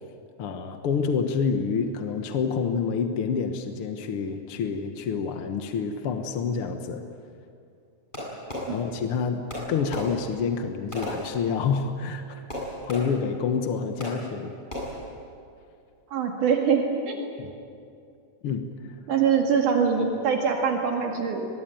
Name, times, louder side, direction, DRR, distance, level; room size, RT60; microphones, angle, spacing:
voice 1, 0.4-7.0 8.7-9.4 9.7-12.4 12.8-14.5 17.4-17.5 18.4-18.7, left 6 dB, 55° left, 6 dB, 1.7 m, -28 dB
Fireworks, 8.1-9.2 9.5-11.9 12.5-13.4 14.0-14.4 14.7-15.2, equal, 15° left, 7.7 m, -36 dB
voice 2, 16.1-17.3 19.1-21.5, right 6 dB, 75° right, 1 dB, 3.5 m, -23 dB
23.0 x 21.5 x 9.1 m, 2.4 s
omnidirectional pair, 3.7 m